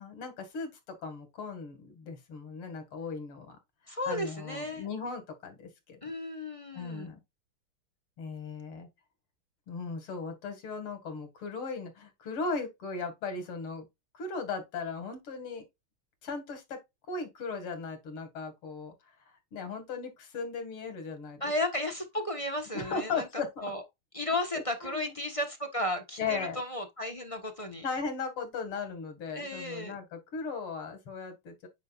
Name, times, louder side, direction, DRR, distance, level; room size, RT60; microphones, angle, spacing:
voice 1, 0.0-3.6 3.8-6.0 6.7-7.2 8.2-8.9 9.7-13.9 14.1-15.6 16.2-16.8 17.1-18.9 19.5-21.4 22.7-23.5 24.5-25.1 26.2-26.6 27.8-31.7, left 4 dB, 90° left, 2.9 m, -37 dB
voice 2, 3.9-4.9 6.0-7.1 21.4-23.3 23.6-23.8 24.1-27.8 29.3-30.0, left 1 dB, 20° left, 1.1 m, -34 dB
9.2 x 4.8 x 2.5 m
omnidirectional pair, 2.3 m